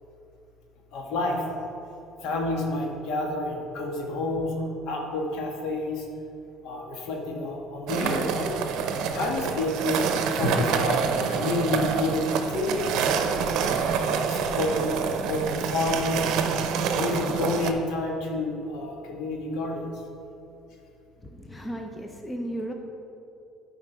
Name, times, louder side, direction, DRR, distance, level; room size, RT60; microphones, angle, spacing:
voice 1, 0.9-1.4 2.2-6.0 6.6-8.5 9.1-10.0 10.4-13.3 14.0-14.9 15.2-16.3 16.9-19.8, left 2 dB, 70° left, 0 dB, 1.6 m, -29 dB
sound 1, 7.9-17.7, right 6 dB, 70° right, 0.7 m, -27 dB
Drum, 10.4-12.3, left 1 dB, 90° left, 1.3 m, -32 dB
voice 2, 21.2-22.7, right 1 dB, 15° left, 3 dB, 0.8 m, -35 dB
11.0 x 5.0 x 4.5 m, 2.7 s
cardioid pair, 110°, 0 cm